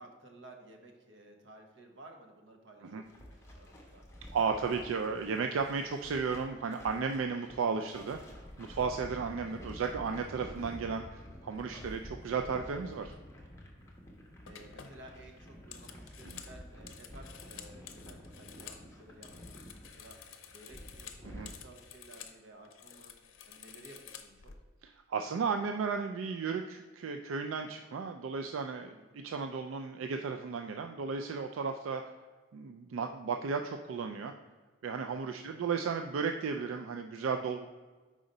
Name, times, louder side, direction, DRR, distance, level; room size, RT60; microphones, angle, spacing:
voice 1, 0.0-4.1 14.5-23.1 23.5-24.5 28.7-29.2 35.1-35.8, right 1 dB, 65° right, 3 dB, 0.9 m, -55 dB
sound 1, 3.0-21.5, equal, 15° left, 0.9 m, -50 dB
voice 2, 4.3-8.2 8.6-13.1 16.3-16.4 21.2-21.5 24.8-32.1 32.5-34.3 34.8-37.7, right 5 dB, 85° right, 5 dB, 0.4 m, -34 dB
sound 2, 13.8-14.0 14.5-18.9 19.1-22.4 22.6-24.5, left 8 dB, 85° left, 0.6 m, -51 dB
4.9 x 3.9 x 5.2 m, 1.3 s
head